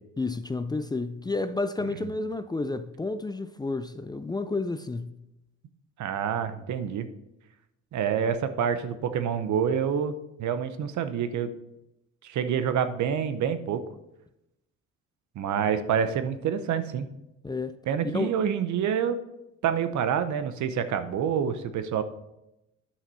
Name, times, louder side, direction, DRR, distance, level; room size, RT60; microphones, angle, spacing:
voice 1, 0.2-5.2 17.4-17.8 18.1-18.3, left 3 dB, 15° left, 0.4 m, -31 dB
voice 2, 6.0-7.1 7.9-10.1 10.4-11.5 12.2-13.8 15.4-17.1 17.9-19.2 19.6-22.0, right 8 dB, 70° right, 0.8 m, -27 dB
9.7 x 5.8 x 4.1 m
cardioid pair, 90°, 30 cm